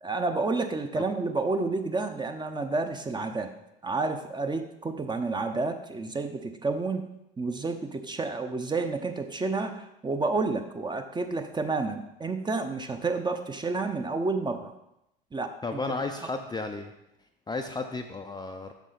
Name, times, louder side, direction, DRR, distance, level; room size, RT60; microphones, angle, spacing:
voice 1, 0.0-3.5 3.8-7.0 7.4-14.7 15.3-15.8, right 3 dB, 15° right, 6 dB, 0.8 m, -30 dB
voice 2, 15.6-16.9 17.5-18.7, left 3 dB, 15° left, 4 dB, 0.6 m, -33 dB
8.2 x 6.4 x 4.0 m, 0.85 s
figure-of-eight pair, 70°, 29 cm